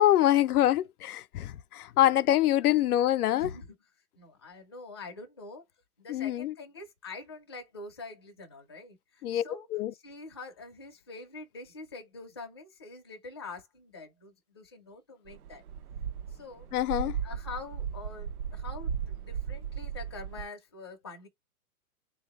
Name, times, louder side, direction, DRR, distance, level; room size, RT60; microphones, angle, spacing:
voice 1, 0.0-3.5 6.1-6.5 9.2-9.4 9.7-9.9 16.7-17.2, left 13 dB, 85° left, 0.6 m, -25 dB
voice 2, 3.4-3.8 4.2-5.6 6.0-9.7 9.9-15.6 16.3-16.7 17.2-21.3, left 3 dB, 20° left, 0.4 m, -45 dB
sound 1, 15.3-20.5, right 7 dB, 90° right, 0.9 m, -36 dB
3.9 x 2.7 x 3.4 m
hypercardioid pair, 170°, 44 cm